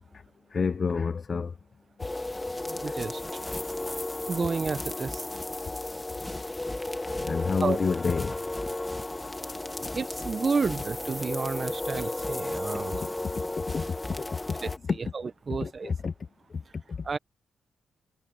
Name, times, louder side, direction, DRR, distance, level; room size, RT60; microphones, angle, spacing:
voice 1, 0.5-1.5 2.9-3.0 7.2-8.4 9.8-10.0 12.7-13.9 14.2-14.6 14.8-15.0 15.6-16.1 16.9-17.0, left 5 dB, 50° left, 0.7 m, -29 dB
sound 1, 2.0-14.8, left 2 dB, 20° left, 2.1 m, -34 dB
voice 2, 2.6-3.2 4.3-5.2 7.6-7.8 9.9-13.2 14.6-14.7 15.0-15.9 17.0-17.2, right 4 dB, 45° right, 1.4 m, -31 dB
cardioid pair, 65°, 0 cm